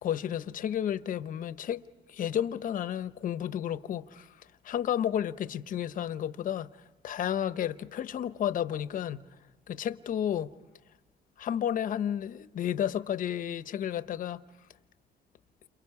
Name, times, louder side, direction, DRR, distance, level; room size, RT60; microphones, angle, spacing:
voice 1, 0.0-1.8 2.1-4.3 4.6-6.7 7.0-9.3 9.7-10.5 11.4-14.4, left 10 dB, 50° left, 0.9 m, -32 dB
29.5 x 28.5 x 4.8 m
cardioid pair, 110°, 17 cm